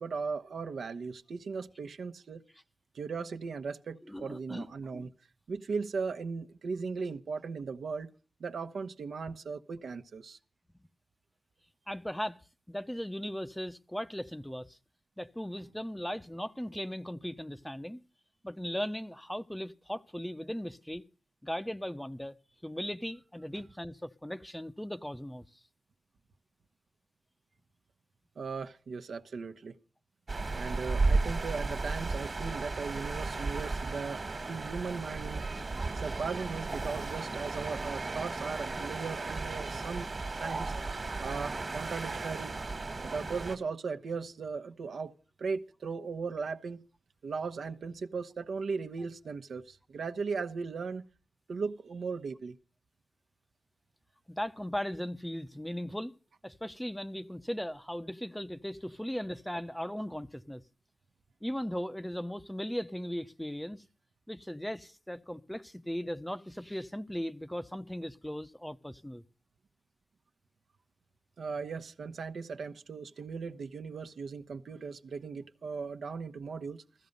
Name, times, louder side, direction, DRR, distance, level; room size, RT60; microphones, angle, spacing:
voice 1, 0.0-2.4 2.9-5.1 5.5-8.1 8.4-10.4 28.4-29.8 30.5-35.4 35.9-40.1 40.4-40.7 41.2-42.5 43.0-46.9 47.2-51.0 51.5-52.6 71.4-76.8, right 5 dB, 75° right, 1.1 m, -37 dB
voice 2, 4.1-4.7 4.9-5.0 9.3-9.4 11.9-12.4 12.7-14.8 15.2-18.0 18.4-21.0 21.4-22.3 22.6-25.4 54.3-56.1 56.4-60.6 61.4-63.8 64.3-69.2, equal, 5° left, 0.7 m, -38 dB
sound 1, 30.3-43.6, right 3 dB, 40° right, 1.7 m, -34 dB
15.5 x 15.0 x 5.3 m
wide cardioid pair, 120°, 0 cm